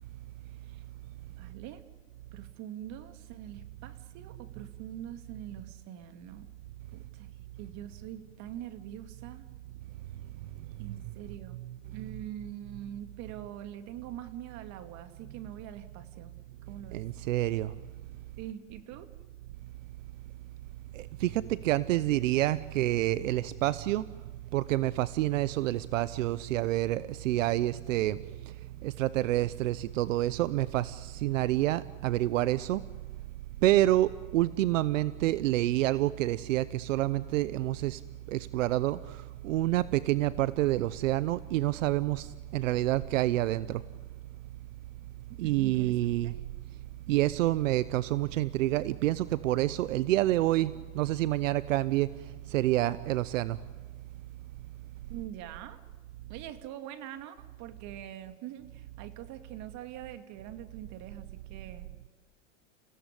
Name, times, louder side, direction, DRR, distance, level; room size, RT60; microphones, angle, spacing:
voice 1, 1.4-1.8 2.3-6.5 6.9-9.5 10.8-11.6 11.9-16.3 16.7-17.0 18.4-19.1 45.4-46.0 46.2-46.3 55.1-55.8 56.3-62.1, right 11 dB, 45° right, 9 dB, 2.3 m, -44 dB
voice 2, 16.9-17.7 20.9-24.1 24.5-28.2 28.4-28.5 28.8-32.8 33.6-38.0 38.3-43.8 45.4-46.3 47.1-52.1 52.5-53.6, right 15 dB, 80° right, 17 dB, 0.8 m, -28 dB
29.5 x 17.0 x 9.9 m, 1.4 s
supercardioid pair, 130°, 38 cm